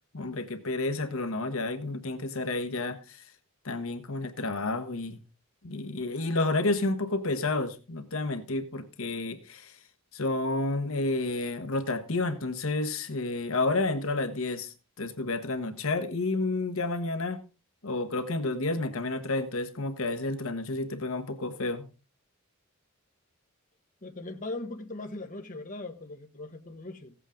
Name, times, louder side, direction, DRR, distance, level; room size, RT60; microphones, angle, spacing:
voice 1, 0.1-3.2 3.6-5.2 5.6-9.8 10.1-17.4 17.8-21.9, left 2 dB, 70° left, 1.1 m, -30 dB
voice 2, 24.0-27.1, left 2 dB, 40° left, 1.3 m, -39 dB
16.5 x 8.2 x 3.7 m
head